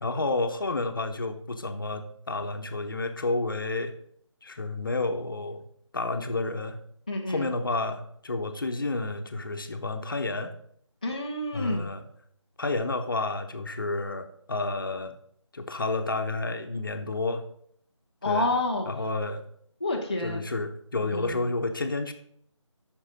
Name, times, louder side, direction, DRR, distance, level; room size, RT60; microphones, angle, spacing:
voice 1, 0.0-3.9 4.4-5.6 5.9-6.8 7.3-10.5 11.5-12.0 12.6-15.1 15.5-17.4 18.2-18.5 18.9-19.4 20.2-22.1, left 2 dB, 45° left, 7 dB, 0.9 m, -30 dB
voice 2, 7.1-7.5 11.0-11.9 18.2-18.9 19.8-20.5 21.1-21.4, left 2 dB, 15° left, -4 dB, 0.5 m, -28 dB
8.0 x 6.2 x 5.2 m, 0.66 s
figure-of-eight pair, 165°, 16 cm